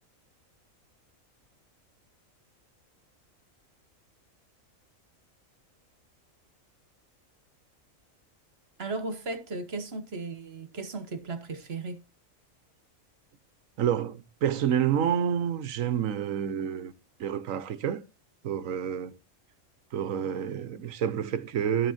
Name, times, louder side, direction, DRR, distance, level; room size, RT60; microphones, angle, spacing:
voice 1, 8.8-12.0, right 3 dB, 50° right, 1.5 m, -36 dB
voice 2, 13.8-16.9 17.2-18.0 18.4-19.2 19.9-21.9, right 9 dB, 80° right, 1.2 m, -28 dB
11.5 x 6.2 x 4.2 m
omnidirectional pair, 1.4 m